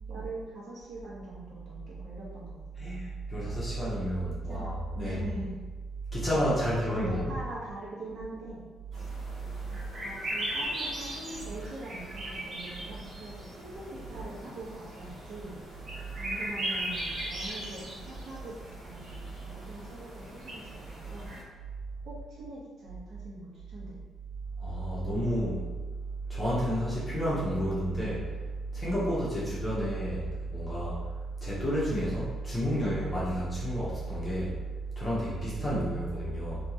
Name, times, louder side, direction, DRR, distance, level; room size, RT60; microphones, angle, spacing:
voice 1, 0.1-2.9 4.2-4.7 4.9-5.6 6.6-8.7 9.9-15.6 16.1-21.3 22.0-24.0, right 2 dB, 60° right, -7 dB, 1.3 m, -43 dB
voice 2, 2.8-5.3 6.1-7.4 24.6-25.7 26.3-31.0 31.4-34.5 35.0-36.7, equal, 25° left, -9 dB, 1.3 m, -30 dB
sound 1, 8.9-21.4, right 1 dB, 40° right, 1.0 m, -39 dB
3.4 x 2.9 x 3.0 m, 1.3 s
cardioid pair, 90°, 0 cm